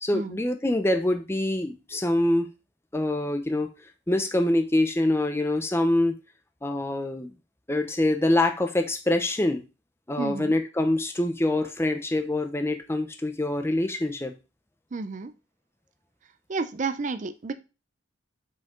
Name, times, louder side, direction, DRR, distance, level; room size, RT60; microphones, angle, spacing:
voice 1, 0.0-2.5 2.9-3.7 4.1-6.1 6.6-7.3 7.7-9.6 10.1-14.3, left 1 dB, 15° left, 7 dB, 0.7 m, -25 dB
voice 2, 10.2-10.6 14.9-15.3 16.5-17.5, right 4 dB, 40° right, 12 dB, 0.5 m, -31 dB
5.7 x 5.2 x 3.7 m, 0.30 s
head